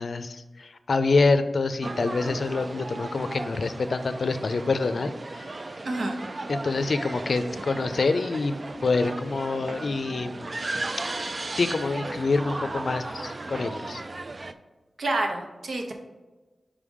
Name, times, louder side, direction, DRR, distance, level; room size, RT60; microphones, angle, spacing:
voice 1, 0.0-5.5 6.5-8.5 8.8-10.6 11.5-14.0, left 3 dB, 70° left, 11 dB, 0.5 m, -26 dB
sound 1, 1.8-14.5, right 2 dB, 40° right, 0.4 m, -36 dB
voice 2, 5.8-6.2 15.0-15.9, right 2 dB, 80° right, 3 dB, 0.9 m, -28 dB
5.1 x 4.9 x 5.3 m, 1.2 s
wide cardioid pair, 80°, 0 cm